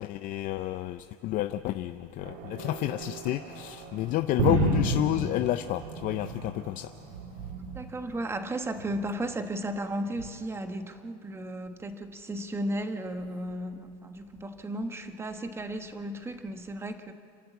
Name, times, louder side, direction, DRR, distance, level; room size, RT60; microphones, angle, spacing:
voice 1, 0.0-6.9, left 14 dB, 45° left, 9 dB, 0.6 m, -30 dB
sound 1, 2.2-8.3, right 7 dB, 60° right, 2.0 m, -46 dB
sound 2, 4.4-6.6 7.0-7.9 8.8-9.2 10.2-10.3, right 3 dB, 75° right, 2.9 m, -30 dB
voice 2, 7.7-17.1, right 1 dB, 15° right, 8 dB, 1.2 m, -34 dB
30.0 x 11.5 x 8.3 m, 2.6 s
supercardioid pair, 135°, 20 cm